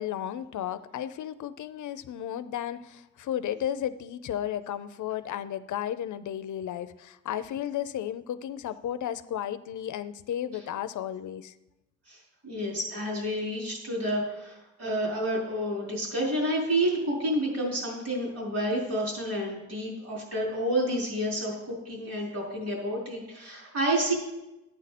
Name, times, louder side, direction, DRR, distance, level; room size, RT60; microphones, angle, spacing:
voice 1, 0.0-11.5, left 10 dB, 85° left, 13 dB, 0.6 m, -34 dB
voice 2, 12.1-24.1, right 1 dB, 55° right, -4 dB, 4.6 m, -29 dB
13.5 x 9.3 x 4.2 m, 0.98 s
wide cardioid pair, 160°, 29 cm